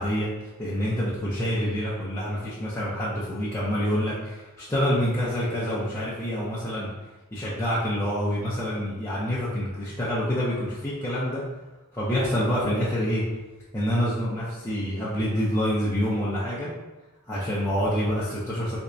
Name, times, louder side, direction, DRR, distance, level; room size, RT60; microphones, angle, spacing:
voice 1, 0.0-6.9 7.3-11.4 11.9-13.2 13.7-16.7 17.3-18.8, equal, 15° left, -10 dB, 0.6 m, -27 dB
3.4 x 3.1 x 2.6 m, 1.1 s
head